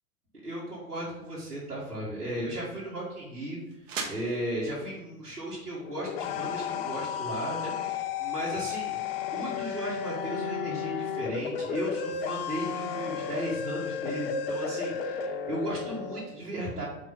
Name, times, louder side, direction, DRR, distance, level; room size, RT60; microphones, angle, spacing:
voice 1, 0.4-3.6 4.1-9.0 9.3-16.9, right 1 dB, 85° right, -10 dB, 1.9 m, -35 dB
sound 1, 1.2-7.1, right 5 dB, 55° right, 1.2 m, -45 dB
sound 2, 5.8-16.2, left 7 dB, 40° left, 0.6 m, -33 dB
4.9 x 4.0 x 5.4 m, 0.99 s
figure-of-eight pair, 90°, 45 cm